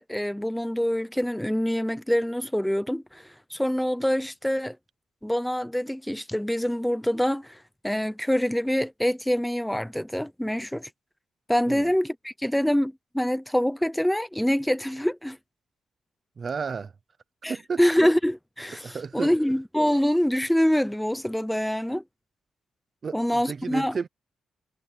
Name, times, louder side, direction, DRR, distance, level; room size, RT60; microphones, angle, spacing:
voice 1, 0.0-4.8 5.2-10.9 11.5-15.4 17.4-22.0 23.1-24.0, equal, ahead, 0.6 m, -25 dB
voice 2, 16.4-16.9 17.5-17.8 18.8-19.3 23.0-24.1, right 5 dB, 35° right, 0.6 m, -32 dB
wide cardioid pair, 175°, 0 cm